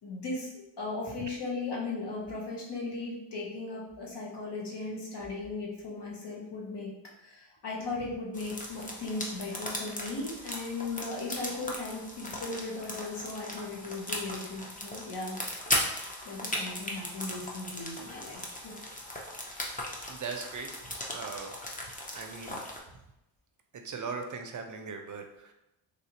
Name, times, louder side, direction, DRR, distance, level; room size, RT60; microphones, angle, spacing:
voice 1, 0.0-6.9 7.2-15.4 16.2-18.8, left 3 dB, 55° left, -3 dB, 1.3 m, -37 dB
sound 1, 8.3-22.8, left 1 dB, 15° left, 0.7 m, -37 dB
voice 2, 20.1-20.7 21.1-21.6 22.1-22.6 23.7-25.5, right 5 dB, 40° right, 4 dB, 0.5 m, -39 dB
3.3 x 2.7 x 2.7 m, 0.90 s
supercardioid pair, 55°, 50 cm